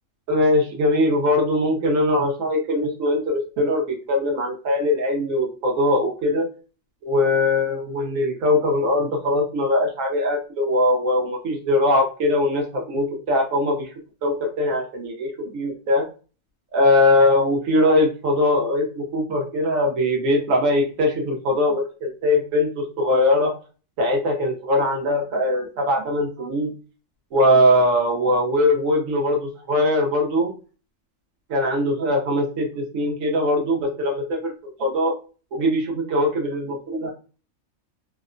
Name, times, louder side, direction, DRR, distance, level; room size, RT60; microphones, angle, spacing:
voice 1, 0.3-6.5 7.0-13.9 14.2-16.0 16.7-23.5 24.0-26.7 27.3-30.5 31.5-35.1 35.5-37.1, left 1 dB, 75° right, 0 dB, 1.0 m, -21 dB
2.8 x 2.0 x 2.4 m, 0.36 s
omnidirectional pair, 1.4 m